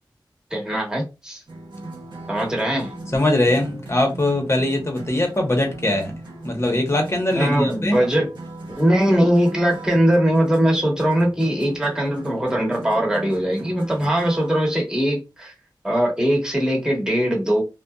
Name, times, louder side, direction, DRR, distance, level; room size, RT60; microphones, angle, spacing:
voice 1, 0.5-1.4 2.3-2.9 7.4-8.3 8.8-15.5 15.8-17.6, equal, 10° right, 1.1 m, -20 dB
sound 1, 1.5-14.6, right 2 dB, 70° right, 0.9 m, -38 dB
voice 2, 3.1-6.1 6.4-8.0, left 1 dB, 35° left, 0.9 m, -21 dB
2.6 x 2.1 x 2.3 m
wide cardioid pair, 40°, 8 cm